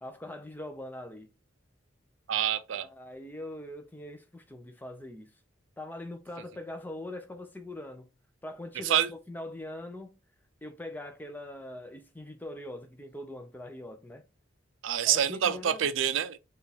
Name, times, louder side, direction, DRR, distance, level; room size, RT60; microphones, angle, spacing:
voice 1, 0.0-1.3 2.7-5.3 5.8-8.1 8.4-10.2 10.6-14.2 15.0-15.9, left 1 dB, 10° left, 0.5 m, -42 dB
voice 2, 2.3-2.9 8.8-9.1 14.8-16.4, right 9 dB, 85° right, 0.4 m, -27 dB
4.5 x 2.4 x 3.4 m
head